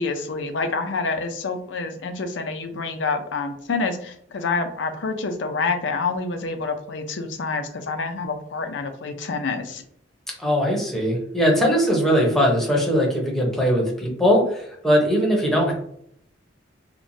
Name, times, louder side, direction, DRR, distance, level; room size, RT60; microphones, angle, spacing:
voice 1, 0.0-9.8, left 4 dB, 85° left, 7 dB, 0.5 m, -27 dB
voice 2, 10.4-15.7, equal, ahead, -2 dB, 0.8 m, -20 dB
2.9 x 2.2 x 2.6 m, 0.69 s
head